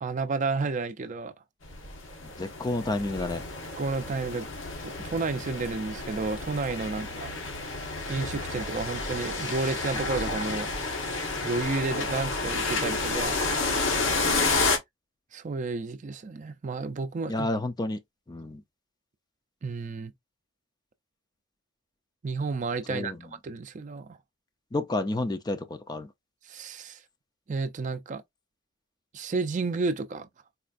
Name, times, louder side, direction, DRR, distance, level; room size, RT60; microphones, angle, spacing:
voice 1, 0.0-1.3 3.8-4.5 4.8-7.3 8.1-10.7 11.4-13.4 15.3-17.5 19.6-20.1 22.2-23.2 23.4-24.2 26.5-27.0 27.5-28.2 29.1-30.3, right 3 dB, 40° right, 0.4 m, -31 dB
sound 1, 1.6-14.8, left 3 dB, 80° left, 1.0 m, -30 dB
voice 2, 2.2-3.4 17.3-18.0 18.3-18.6 22.9-23.2 24.7-26.1, left 2 dB, 20° left, 0.4 m, -30 dB
4.2 x 2.3 x 2.4 m
head